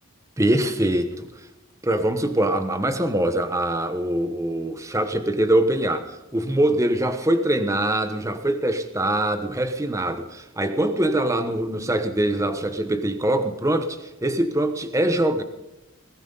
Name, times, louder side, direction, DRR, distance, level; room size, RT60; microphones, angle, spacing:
voice 1, 0.4-1.5 1.8-15.4, right 1 dB, 15° right, 8 dB, 1.1 m, -23 dB
21.5 x 13.5 x 4.0 m, 0.95 s
head